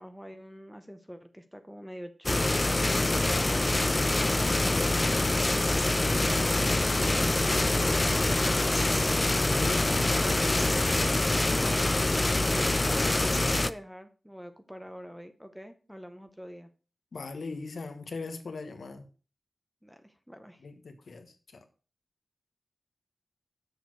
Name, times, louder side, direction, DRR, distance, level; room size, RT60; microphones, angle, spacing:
voice 1, 0.0-6.2 6.7-9.0 11.5-16.7 19.8-20.7, equal, ahead, 8 dB, 0.7 m, -45 dB
sound 1, 2.3-13.7, left 2 dB, 30° left, 0.4 m, -25 dB
sound 2, 2.3-12.9, right 3 dB, 65° right, 1.0 m, -44 dB
voice 2, 9.3-10.4 17.1-19.1 20.6-21.3, left 3 dB, 85° left, 7 dB, 1.1 m, -39 dB
6.7 x 6.3 x 4.6 m, 0.37 s
wide cardioid pair, 95°, 0 cm